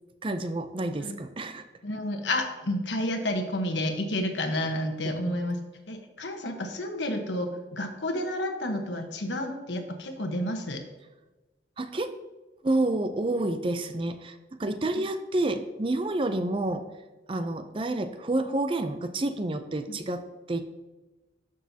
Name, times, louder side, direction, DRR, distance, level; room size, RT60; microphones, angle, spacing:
voice 1, 0.2-1.6 5.0-5.4 11.8-12.1 12.6-16.9 17.3-20.6, right 2 dB, 30° right, 9 dB, 0.5 m, -29 dB
voice 2, 1.8-5.6 5.9-10.8 19.9-20.0, left 1 dB, 75° left, 5 dB, 1.1 m, -30 dB
11.5 x 6.2 x 2.8 m, 1.1 s
head